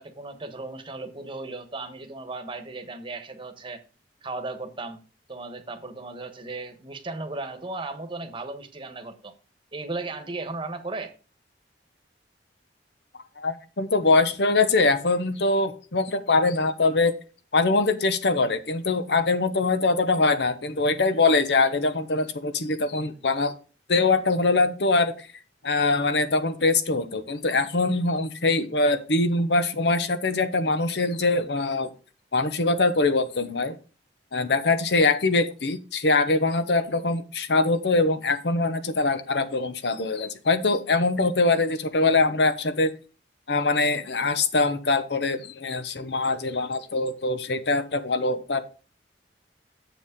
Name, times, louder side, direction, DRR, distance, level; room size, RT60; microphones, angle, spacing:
voice 1, 0.0-3.8 4.2-9.3 9.7-11.1, right 3 dB, 30° right, 1.2 m, -36 dB
voice 2, 13.4-17.1 17.5-23.5 23.9-25.1 25.6-31.9 32.3-33.7 34.3-42.9 43.5-48.6, left 3 dB, 70° left, 0.9 m, -23 dB
7.5 x 7.1 x 3.7 m
head